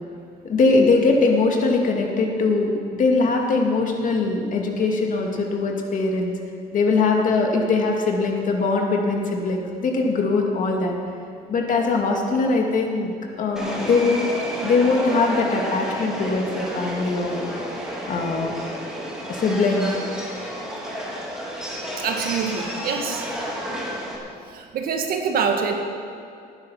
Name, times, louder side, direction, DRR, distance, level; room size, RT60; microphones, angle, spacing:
voice 1, 0.4-6.3 6.7-10.9 11.5-13.1 13.4-14.3 14.6-17.4 18.1-18.5 19.3-20.0, left 3 dB, 50° left, 1 dB, 2.3 m, -21 dB
Subway metro underground, 13.6-24.2, equal, 5° right, 3.4 m, -31 dB
voice 2, 22.0-23.3 24.5-25.7, right 6 dB, 60° right, 4 dB, 1.8 m, -25 dB
18.5 x 9.7 x 5.8 m, 2.4 s
cardioid pair, 110°, 17 cm